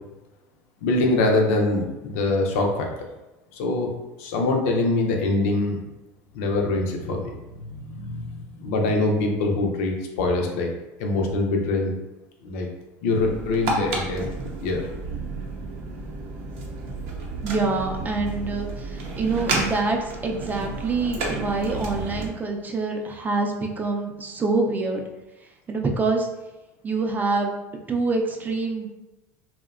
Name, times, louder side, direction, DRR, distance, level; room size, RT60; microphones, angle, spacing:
voice 1, 0.8-2.9 3.5-3.9 4.2-5.8 6.3-10.7 11.0-11.9 12.4-12.7 13.0-14.3 14.6-14.9, left 2 dB, 80° left, 1 dB, 0.5 m, -24 dB
Short Car Journey, 13.2-22.3, right 3 dB, 85° right, 0.6 m, -31 dB
voice 2, 17.4-25.0 25.7-26.3 26.8-27.5 27.9-28.9, right 3 dB, 25° right, 2 dB, 0.4 m, -26 dB
2.7 x 2.1 x 2.4 m, 1.0 s
supercardioid pair, 105°, 7 cm